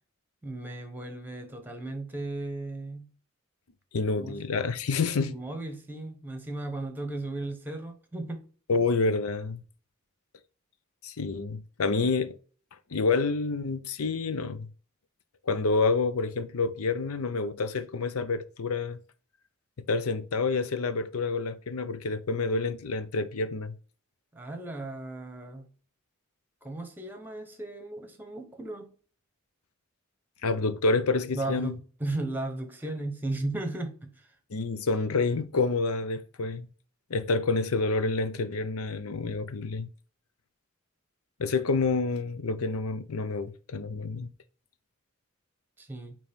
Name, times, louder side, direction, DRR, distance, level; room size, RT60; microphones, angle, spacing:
voice 1, 0.4-3.1 4.2-4.4 5.2-8.5 24.3-25.7 26.6-28.9 31.3-34.3 45.8-46.2, right 2 dB, 10° right, 1.1 m, -36 dB
voice 2, 3.9-5.3 8.7-9.6 11.0-12.4 12.9-14.7 15.5-19.0 19.9-23.7 30.4-31.8 34.5-36.7 37.1-39.9 41.4-44.3, left 3 dB, 90° left, 0.6 m, -28 dB
9.1 x 3.1 x 3.6 m
head